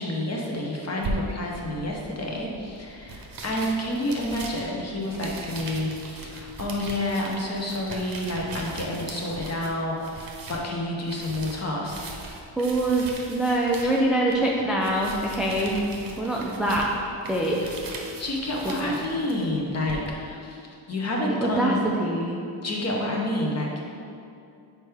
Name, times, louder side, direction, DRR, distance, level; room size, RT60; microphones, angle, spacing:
voice 1, 0.0-12.1 17.6-17.7 18.2-21.8 22.6-23.8, left 1 dB, 30° left, -2 dB, 0.9 m, -29 dB
sound 1, 1.0-20.1, right 3 dB, 45° right, 0.8 m, -40 dB
voice 2, 12.6-15.9 16.2-16.9 17.3-17.6 18.6-19.0 21.3-22.4, right 1 dB, ahead, -3 dB, 0.3 m, -24 dB
6.3 x 4.4 x 3.4 m, 2.5 s
wide cardioid pair, 130°, 49 cm